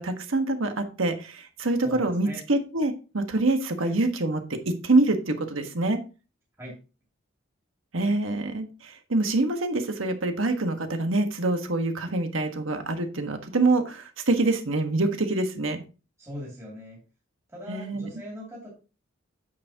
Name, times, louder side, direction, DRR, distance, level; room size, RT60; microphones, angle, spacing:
voice 1, 0.0-4.6 4.8-6.0 7.9-15.8 17.7-18.1, right 2 dB, 80° right, 6 dB, 1.4 m, -25 dB
voice 2, 1.8-2.4 3.8-3.9 6.6-6.8 16.2-17.0 17.5-18.7, equal, 15° right, -4 dB, 2.6 m, -40 dB
9.4 x 6.9 x 2.8 m, 0.33 s
head